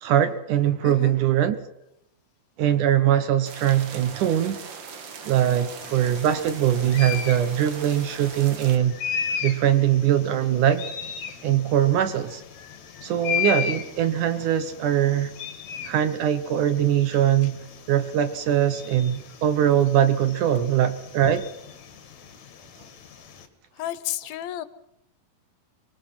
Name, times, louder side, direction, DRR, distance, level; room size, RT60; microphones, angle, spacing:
voice 1, 0.0-1.6 2.6-4.6 5.3-8.9 9.4-10.9 11.4-12.4 13.0-15.3 15.9-17.6 17.9-21.5, right 10 dB, 70° right, 11 dB, 2.2 m, -22 dB
voice 2, 0.8-1.2 17.4-17.5 23.8-24.7, left 13 dB, 75° left, 15 dB, 2.6 m, -32 dB
sound 1, 3.4-8.8, right 6 dB, 50° right, 1.4 m, -40 dB
sound 2, 5.8-23.5, left 8 dB, 50° left, 2.9 m, -36 dB
25.5 x 21.0 x 5.8 m, 0.84 s
omnidirectional pair, 4.4 m